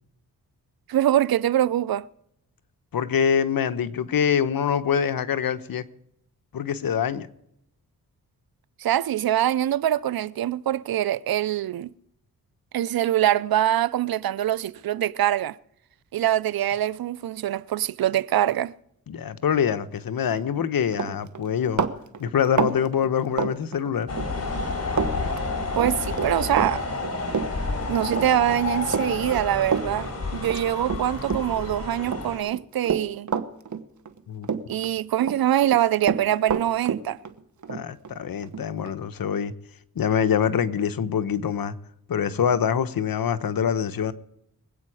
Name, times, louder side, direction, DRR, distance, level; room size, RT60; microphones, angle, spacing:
voice 1, 0.9-2.1 8.8-11.9 12.7-15.6 16.1-18.7 25.7-26.9 27.9-33.3 34.7-37.2, right 12 dB, 70° right, 0.6 m, -24 dB
voice 2, 2.9-5.8 6.5-7.3 19.1-21.8 22.2-24.1 30.3-30.4 34.3-34.5 37.7-39.5 39.9-41.7 42.1-44.1, left 8 dB, 70° left, 1.0 m, -25 dB
Run, 20.4-20.6 20.9-24.3 24.6-25.1 25.4-31.7 32.0-34.2 34.4-35.4 35.6-39.0, right 6 dB, 50° right, 1.2 m, -28 dB
sound 1, 24.1-32.4, left 3 dB, 40° left, 4.0 m, -30 dB
24.0 x 8.7 x 4.8 m
cardioid pair, 70°, 37 cm